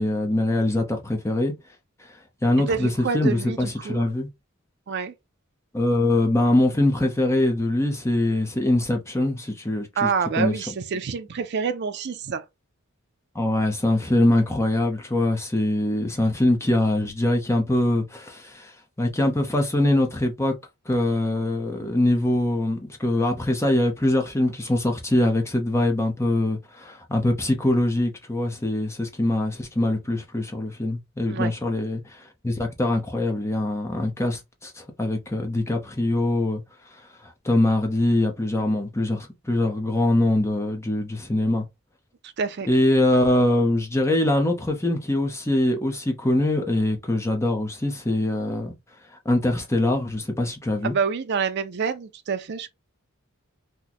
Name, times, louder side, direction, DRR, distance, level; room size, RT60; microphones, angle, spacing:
voice 1, 0.0-1.5 2.4-4.3 5.7-10.1 10.4-10.5 13.3-18.7 19.0-20.5 20.9-36.6 37.4-41.6 42.7-48.7 49.2-50.9, left 1 dB, 15° left, 0.7 m, -23 dB
voice 2, 2.7-4.0 4.9-5.1 10.0-12.4 31.3-31.5 42.2-42.7 50.8-52.7, right 5 dB, 50° right, 0.4 m, -27 dB
3.0 x 2.2 x 4.0 m
head